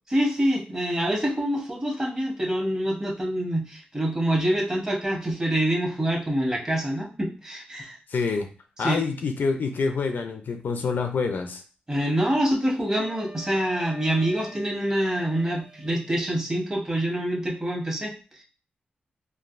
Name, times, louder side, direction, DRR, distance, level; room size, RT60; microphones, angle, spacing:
voice 1, 0.1-7.9 8.8-9.1 11.9-18.1, right 1 dB, 20° right, 0 dB, 0.8 m, -26 dB
voice 2, 8.1-8.5 8.8-11.6, left 4 dB, 65° left, 6 dB, 0.4 m, -27 dB
Wind instrument woodwind instrument, 12.8-16.0, right 1 dB, 45° right, 1.1 m, -45 dB
3.2 x 2.3 x 2.4 m, 0.35 s
wide cardioid pair, 125°, 3 cm